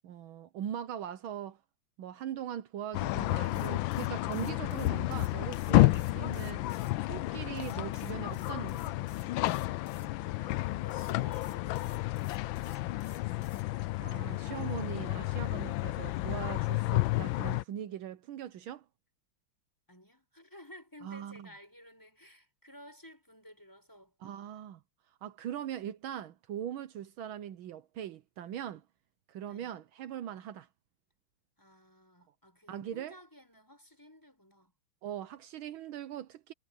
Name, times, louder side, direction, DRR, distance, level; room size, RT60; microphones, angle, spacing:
voice 1, 0.0-1.6 2.0-6.7 7.0-9.1 14.0-18.8 21.0-21.5 24.2-24.8 25.2-28.8 29.3-30.7 32.7-33.1 35.0-36.5, right 10 dB, 75° right, 1.6 m, -41 dB
sound 1, 2.9-17.6, left 17 dB, 75° left, 1.3 m, -31 dB
sound 2, 3.4-6.9 7.5-10.1 10.9-13.7, left 6 dB, 45° left, 2.0 m, -57 dB
voice 2, 10.0-13.4 19.9-24.2 29.4-29.7 31.6-34.7, left 1 dB, 10° left, 7.8 m, -55 dB
omnidirectional pair, 2.3 m